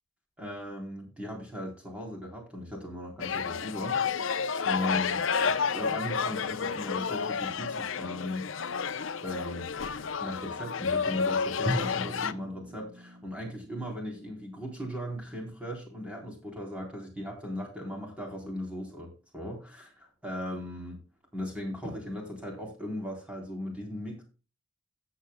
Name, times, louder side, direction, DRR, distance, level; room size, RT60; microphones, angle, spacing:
voice 1, 0.4-8.5 9.2-9.7 10.2-21.0 21.3-24.2, left 1 dB, 5° right, 0 dB, 3.8 m, -38 dB
sound 1, 3.2-12.3, left 6 dB, 70° left, 0.7 m, -30 dB
Drum, 11.7-15.4, equal, 80° right, 5.1 m, -38 dB
16.0 x 8.1 x 2.2 m, 0.31 s
head